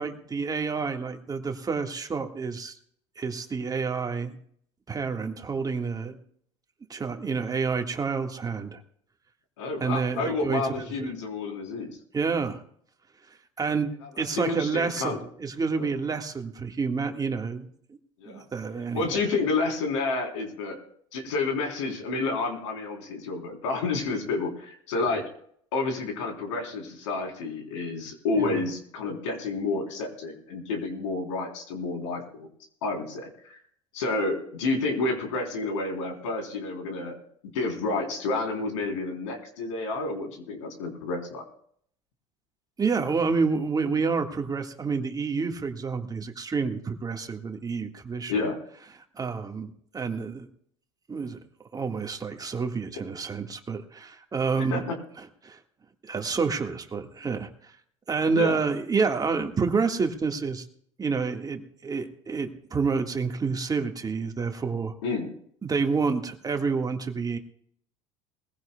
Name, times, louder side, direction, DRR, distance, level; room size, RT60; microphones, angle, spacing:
voice 1, 0.0-2.7 3.2-4.4 4.9-6.2 6.9-8.8 9.8-10.6 12.1-12.6 13.6-13.9 14.2-17.7 18.2-19.2 28.4-28.6 42.8-48.4 49.2-50.5 51.1-51.4 51.7-54.8 55.2-55.6 56.1-57.7 58.1-60.6 61.0-64.9 65.6-67.4, right 5 dB, 25° right, 4 dB, 1.8 m, -28 dB
voice 2, 9.6-12.0 14.2-15.2 15.8-15.9 18.2-18.4 18.9-20.8 21.1-25.2 25.7-32.5 32.8-33.6 33.9-37.2 37.4-41.4 48.3-48.6 54.7-54.8 58.3-58.6 65.0-65.3, left 3 dB, 80° left, 2 dB, 3.8 m, -30 dB
21.0 x 16.0 x 2.3 m, 0.63 s
hypercardioid pair, 80°, 16 cm